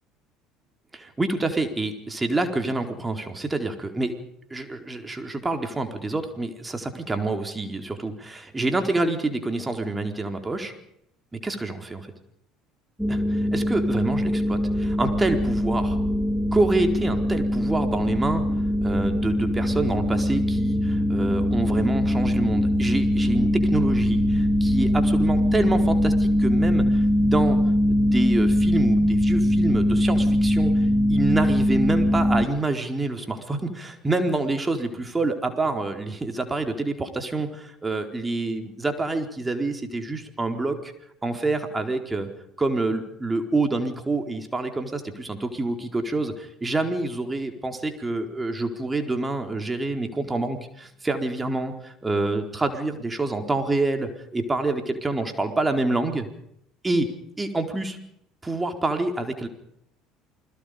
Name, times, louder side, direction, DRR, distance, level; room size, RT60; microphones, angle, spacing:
voice 1, 0.9-4.1 4.5-10.7 11.3-12.1 13.1-16.0 16.5-18.4 18.8-27.6 27.9-30.7 31.1-40.9 41.2-42.3 42.6-56.3 56.8-57.1 57.4-58.0 58.4-59.5, right 2 dB, 15° right, 5 dB, 4.4 m, -27 dB
sound 1, 13.0-32.5, equal, ahead, 2.2 m, -22 dB
29.0 x 21.5 x 5.2 m, 0.76 s
figure-of-eight pair, 60°, 0 cm